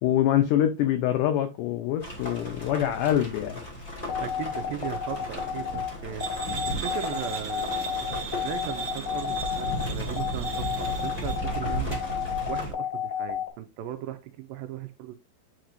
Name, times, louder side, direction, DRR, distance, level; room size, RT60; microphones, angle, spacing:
voice 1, 0.0-3.6, left 11 dB, 90° left, 1.8 m, -25 dB
sound 1, 2.0-12.7, equal, 45° left, 0.5 m, -35 dB
sound 2, 4.1-13.5, left 9 dB, 65° left, 1.6 m, -31 dB
voice 2, 4.2-12.0 12.5-15.1, right 11 dB, 80° right, 2.2 m, -38 dB
sound 3, 6.2-11.4, right 7 dB, 60° right, 1.3 m, -38 dB
8.6 x 4.5 x 2.5 m
omnidirectional pair, 4.5 m